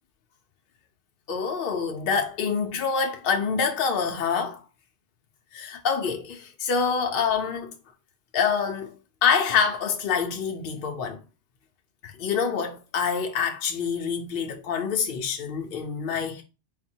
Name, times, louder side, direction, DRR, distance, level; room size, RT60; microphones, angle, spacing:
voice 1, 1.3-4.6 5.5-7.7 8.3-8.9 9.2-11.2 12.0-16.4, left 6 dB, 60° left, 0.7 m, -26 dB
4.1 x 2.2 x 4.2 m
omnidirectional pair, 1.2 m